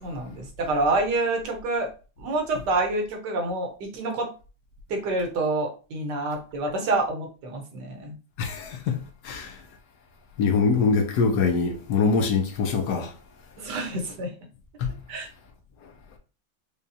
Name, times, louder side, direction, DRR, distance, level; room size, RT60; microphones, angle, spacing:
voice 1, 0.0-1.9 2.2-4.3 4.9-8.1 13.6-14.3 15.1-15.3, right 2 dB, 70° right, 1.5 m, -27 dB
voice 2, 8.4-9.6 10.4-13.1 14.8-14.9 15.8-15.9, left 4 dB, 75° left, 1.1 m, -24 dB
5.1 x 2.3 x 2.7 m
omnidirectional pair, 1.9 m